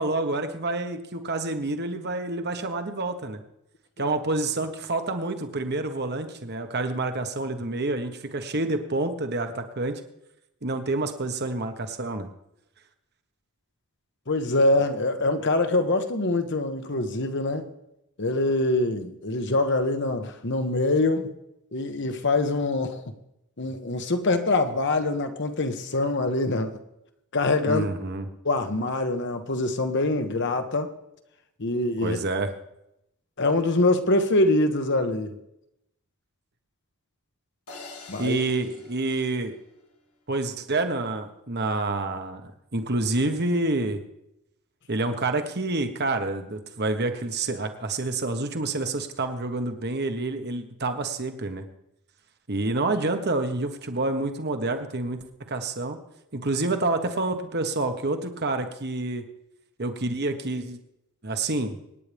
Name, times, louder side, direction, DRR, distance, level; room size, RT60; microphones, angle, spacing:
voice 1, 0.0-3.4 4.0-10.0 10.6-12.3 27.7-28.3 32.0-32.5 38.2-39.6 40.3-44.0 44.9-51.6 52.5-56.0 56.3-59.2 59.8-60.8 61.2-61.8, right 2 dB, 50° right, 1.3 m, -28 dB
voice 2, 14.3-17.7 18.2-21.3 21.7-23.0 23.6-26.8 27.3-27.9 28.4-30.9 31.6-32.2 33.4-35.3 38.1-38.4, left 2 dB, 55° left, 1.2 m, -24 dB
sound 1, 37.7-40.0, left 3 dB, 90° left, 2.3 m, -46 dB
25.5 x 9.8 x 3.5 m
head